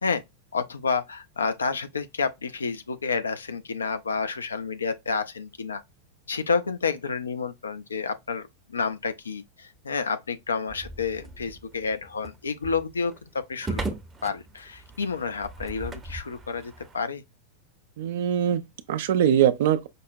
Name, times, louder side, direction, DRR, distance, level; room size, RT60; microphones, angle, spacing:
voice 1, 0.5-5.8 6.3-13.8 14.2-17.2, left 5 dB, 70° left, 0.5 m, -30 dB
sound 1, 10.7-17.0, right 2 dB, 15° right, 0.6 m, -38 dB
voice 2, 18.0-19.9, right 10 dB, 55° right, 0.4 m, -22 dB
5.2 x 2.1 x 2.5 m
figure-of-eight pair, 90°, 0 cm